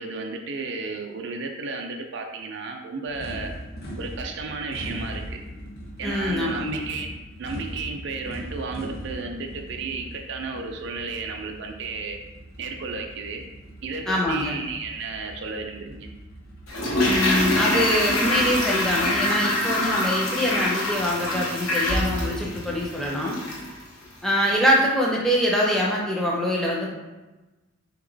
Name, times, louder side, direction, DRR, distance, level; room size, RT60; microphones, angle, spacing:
voice 1, 0.0-3.5 4.0-5.4 6.0-12.2 12.6-13.4 13.8-16.1, right 4 dB, 55° right, 3 dB, 0.4 m, -33 dB
sound 1, 3.1-19.2, equal, 45° left, 0.8 m, -40 dB
voice 2, 6.0-6.8 14.1-14.5 17.0-23.4 24.2-26.9, equal, ahead, -4 dB, 0.5 m, -24 dB
Toilet flush, 16.7-23.8 24.0-24.1, left 1 dB, 85° left, 1.0 m, -25 dB
3.9 x 2.9 x 3.9 m, 1.1 s
head